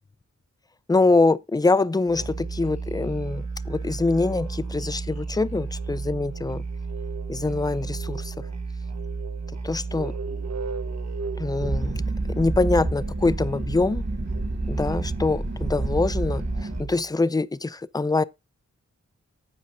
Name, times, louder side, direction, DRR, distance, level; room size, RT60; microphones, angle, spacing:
voice 1, 0.9-6.6 7.3-8.5 9.6-10.1 11.4-12.0 12.4-14.0 14.7-18.2, left 3 dB, 15° left, 0.4 m, -24 dB
Musical instrument, 2.1-17.1, right 4 dB, 65° right, 1.4 m, -33 dB
sound 1, 11.6-16.8, right 2 dB, 40° right, 2.1 m, -29 dB
9.7 x 8.5 x 2.8 m
wide cardioid pair, 90°, 29 cm